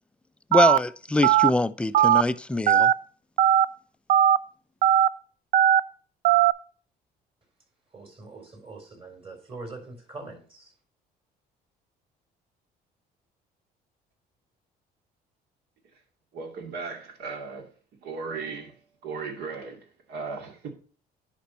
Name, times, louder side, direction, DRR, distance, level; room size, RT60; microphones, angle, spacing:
voice 1, 0.5-2.9, left 2 dB, 5° left, 0.4 m, -24 dB
Telephone, 0.5-0.8 1.2-1.5 1.9-2.2 2.7-2.9 3.4-3.7 4.1-4.4 4.8-5.1 5.5-5.8 6.2-6.5, right 11 dB, 55° right, 0.4 m, -18 dB
voice 2, 7.9-10.7, right 3 dB, 35° right, 4.1 m, -43 dB
voice 3, 16.3-17.7 18.0-20.7, right 4 dB, 70° right, 2.5 m, -37 dB
10.0 x 5.2 x 4.3 m
cardioid pair, 110°, 17 cm